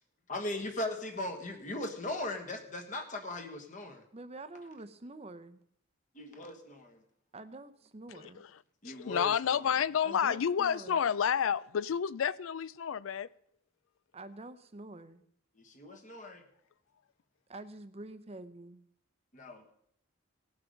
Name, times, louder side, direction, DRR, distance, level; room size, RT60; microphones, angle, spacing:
voice 1, 0.3-4.0 6.1-7.0 8.8-9.8 15.6-16.4 19.3-19.6, left 1 dB, 40° left, 1.4 m, -39 dB
voice 2, 4.1-5.6 7.3-8.4 10.0-11.0 14.1-15.2 17.5-18.8, right 2 dB, 30° right, 0.7 m, -47 dB
voice 3, 8.8-13.3, left 8 dB, 80° left, 0.4 m, -30 dB
17.5 x 6.0 x 5.1 m
head